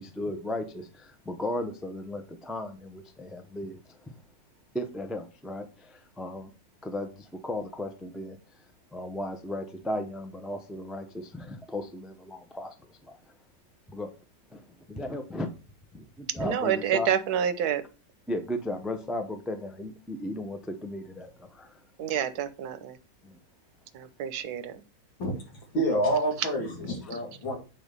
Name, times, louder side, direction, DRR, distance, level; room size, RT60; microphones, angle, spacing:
voice 1, 0.0-4.1 4.7-6.5 6.8-8.4 8.9-13.2 13.9-14.1 14.5-15.5 15.9-17.1 18.3-21.8 23.2-23.4, left 1 dB, ahead, 0.4 m, -35 dB
voice 2, 16.4-17.8 22.0-23.0 23.9-24.7, right 9 dB, 65° right, 1.2 m, -28 dB
voice 3, 25.7-27.6, right 1 dB, 90° left, 3.0 m, -27 dB
9.0 x 4.0 x 5.3 m
omnidirectional pair, 2.0 m